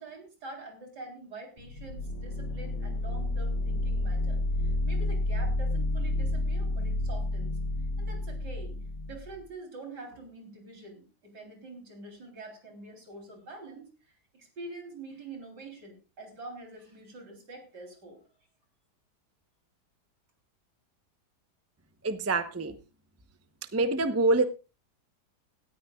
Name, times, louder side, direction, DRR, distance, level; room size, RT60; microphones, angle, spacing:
voice 1, 0.0-7.5 8.0-8.7 9.0-18.2, right 2 dB, 70° right, 3 dB, 4.2 m, -45 dB
sound 1, 1.6-9.4, left 1 dB, 75° left, 1.6 m, -30 dB
voice 2, 22.0-22.7 23.7-24.4, right 2 dB, 15° right, 10 dB, 0.5 m, -25 dB
18.0 x 13.5 x 2.4 m, 0.31 s
omnidirectional pair, 1.8 m